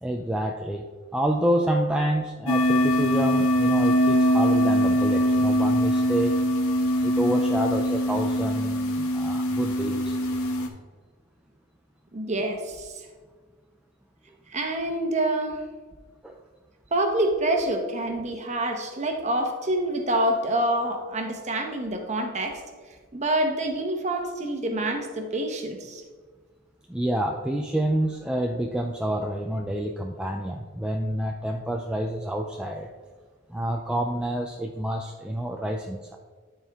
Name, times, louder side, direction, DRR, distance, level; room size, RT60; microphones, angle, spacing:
voice 1, 0.0-0.8 1.1-6.3 7.0-10.2 16.2-16.4 26.9-32.9 33.5-36.2, right 1 dB, 5° right, 1 dB, 0.3 m, -28 dB
sound 1, 2.5-10.7, equal, 75° left, 1.0 m, -22 dB
voice 2, 12.1-12.9 14.5-15.6 16.9-22.6 23.1-26.0, right 1 dB, 30° right, 4 dB, 0.9 m, -26 dB
12.5 x 4.5 x 3.5 m, 1.5 s
head